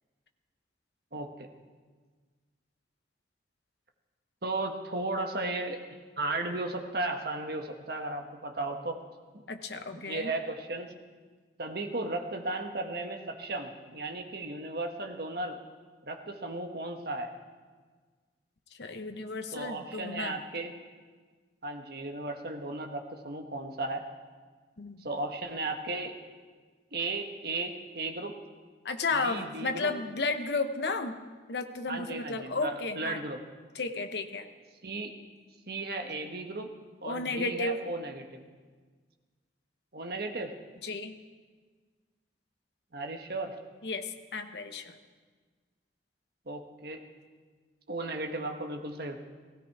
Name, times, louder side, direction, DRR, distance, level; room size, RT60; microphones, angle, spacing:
voice 1, 1.1-1.5 4.4-5.8 6.2-9.0 9.3-9.4 10.0-10.9 11.6-15.6 16.0-17.3 19.5-20.7 21.6-24.0 25.0-26.2 26.9-28.4 29.1-29.9 31.9-33.4 34.8-35.1 35.7-36.7 37.0-38.5 39.9-40.6 42.9-43.5 46.5-47.0 47.9-49.2, right 2 dB, 60° right, 4 dB, 1.4 m, -35 dB
voice 2, 9.5-10.3 18.8-20.4 24.8-25.1 28.8-31.2 31.5-33.2 33.7-34.5 37.0-37.8 40.8-41.1 43.8-45.0, left 3 dB, 70° left, 6 dB, 1.0 m, -33 dB
16.5 x 16.0 x 4.8 m, 1.5 s
head